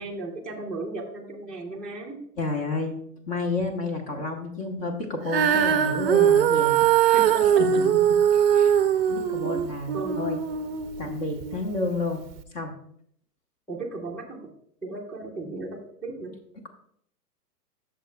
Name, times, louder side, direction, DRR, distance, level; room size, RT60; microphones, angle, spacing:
voice 1, 0.0-2.2 7.1-7.8 9.4-9.5 9.9-10.2 13.7-14.4 14.8-16.3, right 2 dB, ahead, -5 dB, 0.9 m, -35 dB
voice 2, 2.4-2.9 3.3-7.2 8.3-8.8 9.1-10.4 11.0-12.2 12.5-12.7, left 2 dB, 25° left, 3 dB, 1.0 m, -30 dB
Female singing, 5.3-11.6 12.3-12.4, right 9 dB, 40° right, 0.6 m, -21 dB
13.0 x 6.4 x 2.3 m, 0.66 s
hypercardioid pair, 145°, 48 cm